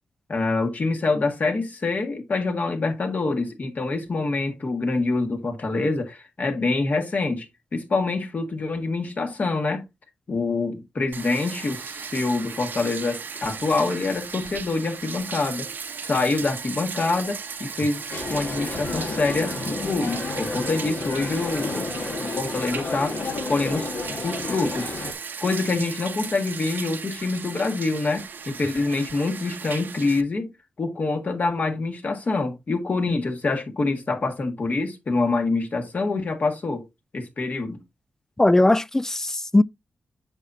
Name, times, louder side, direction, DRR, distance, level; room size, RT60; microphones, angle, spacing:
voice 1, 0.3-7.5 7.7-9.8 10.3-15.7 16.0-21.9 22.3-23.1 23.5-23.9 24.2-24.9 25.4-30.5 30.8-36.8 37.1-37.8, left 3 dB, 45° left, 1.7 m, -26 dB
Bathtub (filling or washing), 11.1-30.2, right 5 dB, 55° right, 0.8 m, -36 dB
sound 1, 18.1-25.1, left 3 dB, 60° left, 1.6 m, -31 dB
voice 2, 38.4-39.6, left 2 dB, 15° left, 0.3 m, -19 dB
8.1 x 5.7 x 2.7 m
wide cardioid pair, 100°, 4 cm